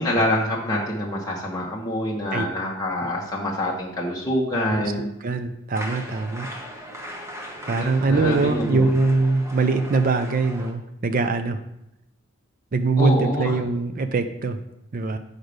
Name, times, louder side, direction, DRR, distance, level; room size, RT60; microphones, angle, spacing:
voice 1, 0.0-5.1 7.7-8.9 13.0-13.6, left 1 dB, 15° left, -5 dB, 0.9 m, -26 dB
voice 2, 4.7-6.5 7.7-11.6 12.7-14.6 14.9-15.2, right 3 dB, 40° right, 8 dB, 0.4 m, -22 dB
sound 1, 5.7-10.7, equal, 15° right, 0.9 m, -38 dB
6.2 x 5.1 x 5.1 m, 0.85 s
head